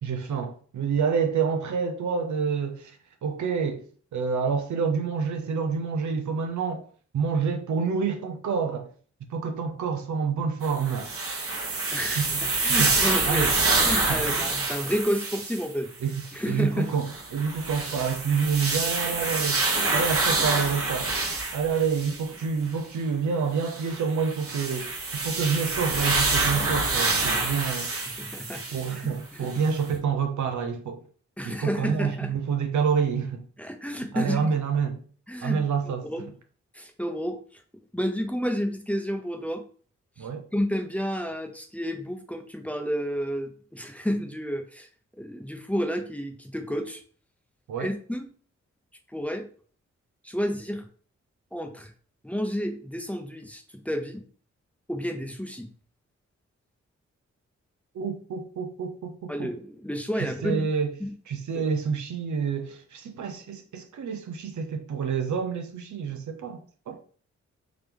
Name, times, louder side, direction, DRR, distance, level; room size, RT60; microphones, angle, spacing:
voice 1, 0.0-2.9 3.2-3.9 4.1-6.9 7.1-8.9 9.3-11.1 12.2-12.4 12.7-13.0 13.2-13.5 14.1-14.2 16.0-21.1 21.5-27.9 28.7-31.0 31.4-33.4 34.1-35.0 35.4-36.1 40.2-40.5 47.7-47.9 57.9-59.5 60.4-61.0 61.3-66.6 66.9-67.0, right 6 dB, 75° right, 0.7 m, -28 dB
sound 1, 10.6-15.7 16.1-16.3 17.0-22.4 23.6-29.0 29.5-29.6, right 3 dB, 50° right, 1.2 m, -27 dB
voice 2, 11.9-13.6 13.8-15.9 16.3-16.9 28.2-28.6 28.9-29.1 29.4-29.5 31.4-32.3 33.6-34.5 35.3-35.6 36.0-36.3 36.7-37.4 37.9-39.6 40.2-44.9 45.2-47.0 47.8-48.3 49.1-49.5 50.2-50.8 51.5-51.9 52.2-54.2 54.9-55.7 59.3-60.6 61.5-61.7, equal, 5° left, 0.8 m, -30 dB
3.7 x 2.9 x 3.5 m
cardioid pair, 45°, 29 cm